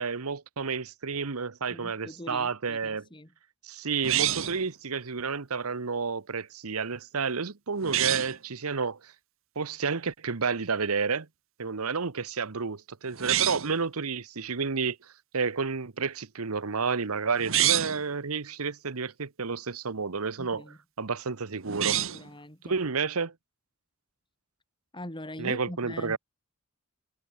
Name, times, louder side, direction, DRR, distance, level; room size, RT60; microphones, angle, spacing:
voice 1, 0.0-3.1 3.6-9.1 9.5-11.3 11.6-20.6 21.0-22.0 22.6-23.3 25.4-26.2, right 5 dB, 85° right, 1.0 m, -31 dB
voice 2, 1.7-3.3 20.4-20.8 22.1-22.7 24.9-26.2, left 1 dB, 20° left, 6.1 m, -42 dB
sound 1, 4.0-4.7 7.8-8.4 13.1-13.8 17.4-18.0 21.6-22.3, right 12 dB, 65° right, 2.1 m, -27 dB
head